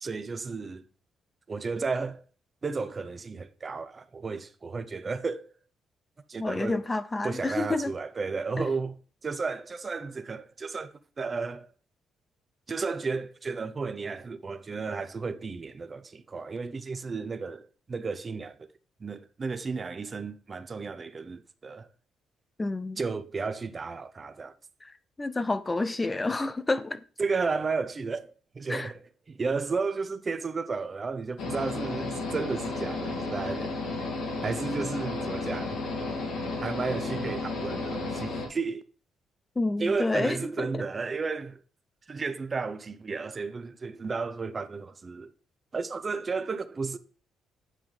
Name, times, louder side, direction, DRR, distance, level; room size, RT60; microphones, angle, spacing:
voice 1, 0.0-0.8 1.5-2.2 2.6-5.5 6.3-6.8 7.2-8.9 9.2-10.9 11.2-11.7 12.7-18.6 19.0-21.9 23.0-24.5 27.2-29.0 29.3-33.7 34.4-35.8 36.6-38.8 39.8-41.6 42.1-45.3 45.7-47.0, right 4 dB, 35° right, 0.7 m, -33 dB
voice 2, 6.4-7.9 8.6-8.7 22.6-23.0 24.8-27.0 28.7-28.9 39.6-40.8, left 2 dB, 20° left, 0.5 m, -29 dB
sound 1, 31.4-38.5, left 3 dB, 80° left, 2.0 m, -33 dB
9.1 x 5.7 x 3.2 m
cardioid pair, 90°, 0 cm